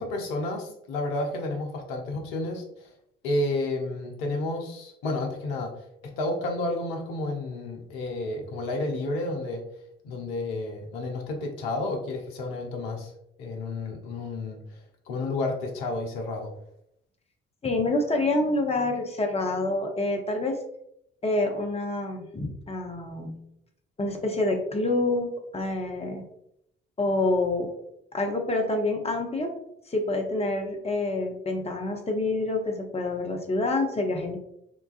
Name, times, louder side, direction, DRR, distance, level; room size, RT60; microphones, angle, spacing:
voice 1, 0.0-2.9 3.2-5.7 6.0-9.6 10.0-13.1 13.4-14.8 15.1-16.5, left 2 dB, 80° left, 2 dB, 0.6 m, -31 dB
voice 2, 17.6-20.6 21.2-23.4 24.0-26.2 27.0-27.7 28.1-29.5 29.9-34.4, left 2 dB, 20° left, 2 dB, 0.7 m, -27 dB
3.8 x 2.3 x 2.4 m, 0.78 s
hypercardioid pair, 40°, 29 cm